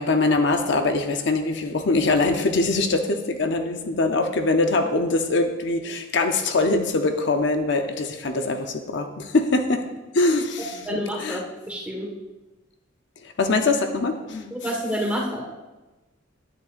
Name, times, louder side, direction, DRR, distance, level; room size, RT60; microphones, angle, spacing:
voice 1, 0.0-9.9 10.1-11.4 13.2-14.5, left 3 dB, 60° left, 5 dB, 0.7 m, -23 dB
voice 2, 10.8-12.1 14.5-15.4, equal, 5° right, -2 dB, 1.4 m, -28 dB
9.8 x 9.5 x 2.5 m, 1.1 s
head